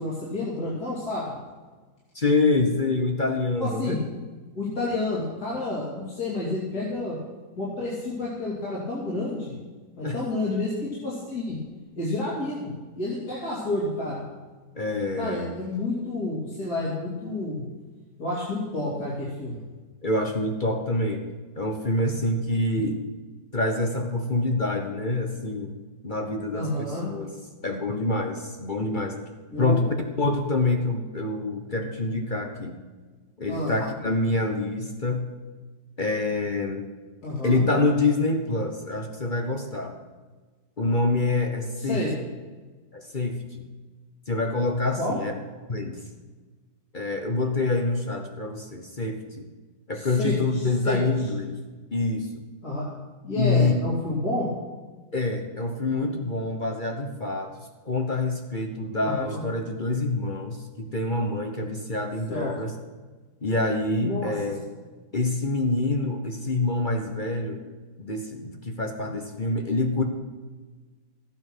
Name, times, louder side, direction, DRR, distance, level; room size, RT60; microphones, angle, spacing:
voice 1, 0.0-1.4 3.6-4.0 4.5-7.2 7.6-9.5 10.0-11.6 12.0-12.7 13.0-14.2 15.2-17.6 18.2-19.6 26.5-27.1 29.5-29.8 33.5-33.7 37.2-37.6 41.8-42.1 45.0-45.2 49.9-51.0 52.6-52.9 53.2-54.5 59.0-59.4 62.3-62.5 64.0-64.3, left 2 dB, 55° left, -7 dB, 3.4 m, -30 dB
voice 2, 2.1-4.0 10.0-10.2 14.7-15.5 20.0-21.3 21.6-23.0 23.5-25.7 26.0-26.7 27.1-27.3 27.6-29.2 29.6-32.8 33.4-35.3 36.0-36.8 37.4-39.9 40.8-42.0 42.9-43.6 44.3-45.3 45.7-46.0 46.9-49.5 49.9-51.6 51.9-52.3 53.4-53.8 55.1-57.6 57.8-62.7 63.4-64.6 65.1-67.6 68.0-70.0, left 2 dB, 35° left, 4 dB, 0.9 m, -26 dB
14.5 x 8.9 x 6.2 m, 1.3 s
omnidirectional pair, 2.1 m